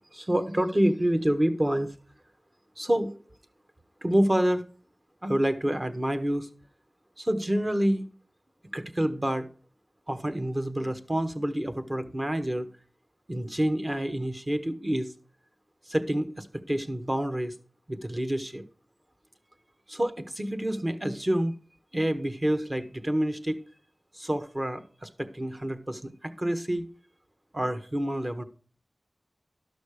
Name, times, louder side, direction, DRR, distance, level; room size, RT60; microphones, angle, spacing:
voice 1, 0.1-1.9 2.8-3.2 4.0-4.6 5.2-6.5 7.2-8.0 8.7-9.5 10.1-12.7 13.3-15.1 15.9-17.5 17.9-18.6 19.9-21.5 21.9-23.6 24.1-26.9 27.5-28.4, right 1 dB, 30° right, 10 dB, 1.0 m, -28 dB
12.0 x 6.2 x 4.9 m, 0.39 s
wide cardioid pair, 65°, 0 cm